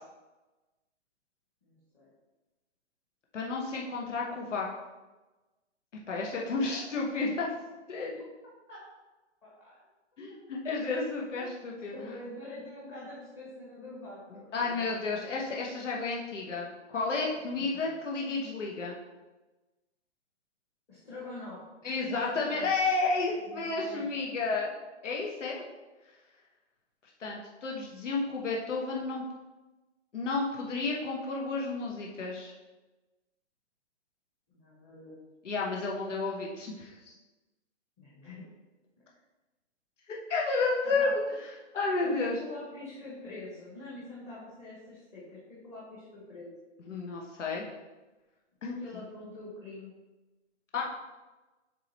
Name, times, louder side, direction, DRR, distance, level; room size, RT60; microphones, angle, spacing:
voice 1, 1.6-2.1 6.6-6.9 8.7-8.8 9.4-9.8 10.3-10.8 11.3-11.6 11.9-15.2 17.6-17.9 20.9-21.6 22.1-22.7 23.5-24.0 34.5-35.2 38.0-38.4 40.8-41.1 42.0-45.4 45.6-46.5 48.6-49.9, left 2 dB, 15° left, -8 dB, 1.0 m, -45 dB
voice 2, 3.3-4.7 6.1-7.5 7.9-8.1 10.2-11.9 14.3-18.9 21.8-24.7 25.0-25.6 27.2-29.2 30.1-32.5 35.4-37.0 40.3-41.2 41.7-42.3 46.8-47.6 48.6-48.7 50.7-50.8, left 3 dB, 85° left, -2 dB, 1.2 m, -31 dB
7.5 x 3.2 x 4.2 m, 1.1 s
hypercardioid pair, 165°, 36 cm